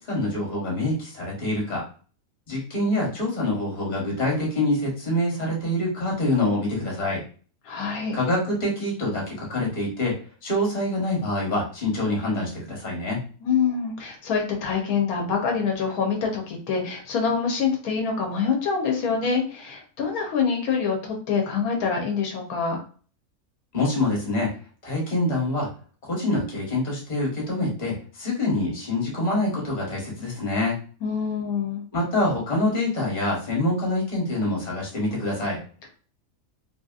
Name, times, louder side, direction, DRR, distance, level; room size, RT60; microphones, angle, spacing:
voice 1, 0.0-1.8 2.5-7.2 8.1-10.1 10.4-13.2 23.7-24.5 24.8-25.7 26.1-30.8 31.9-35.6, left 1 dB, 30° left, -3 dB, 1.0 m, -25 dB
voice 2, 7.7-8.1 13.4-22.8 31.0-31.8, left 6 dB, 85° left, 2 dB, 1.2 m, -25 dB
2.8 x 2.7 x 2.4 m, 0.41 s
omnidirectional pair, 1.5 m